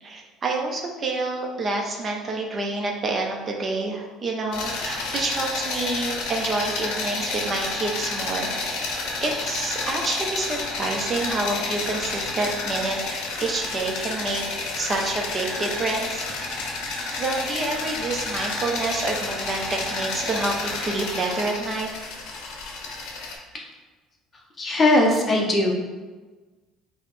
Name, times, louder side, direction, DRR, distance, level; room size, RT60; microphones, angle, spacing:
voice 1, 0.0-8.5 9.2-14.4 14.7-16.3 17.2-21.9, right 2 dB, 30° right, 0 dB, 0.5 m, -28 dB
sound 1, 4.5-23.4, left 3 dB, 75° left, 0.6 m, -30 dB
voice 2, 24.6-25.7, left 1 dB, 25° left, 0 dB, 0.6 m, -19 dB
4.7 x 2.0 x 3.1 m, 1.3 s
cardioid pair, 130°, 0 cm